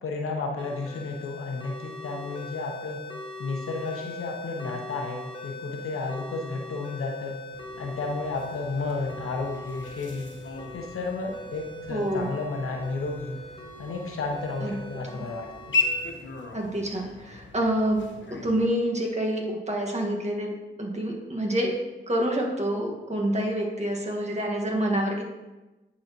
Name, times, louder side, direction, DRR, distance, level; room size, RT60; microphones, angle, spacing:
voice 1, 0.0-3.0 3.4-7.4 7.8-10.3 10.7-13.4 13.8-15.8, left 3 dB, 85° left, 2 dB, 0.9 m, -32 dB
sound 1, 0.6-16.1, left 1 dB, 20° left, 1.2 m, -41 dB
sound 2, 7.5-18.7, left 3 dB, 60° left, 1.0 m, -37 dB
voice 2, 11.9-12.3 14.6-14.7 15.1-15.2 16.5-18.0 18.4-20.5 20.8-21.7 22.1-25.2, right 1 dB, 30° right, -1 dB, 1.6 m, -27 dB
10.5 x 4.1 x 3.0 m, 1.1 s
cardioid pair, 45°, 21 cm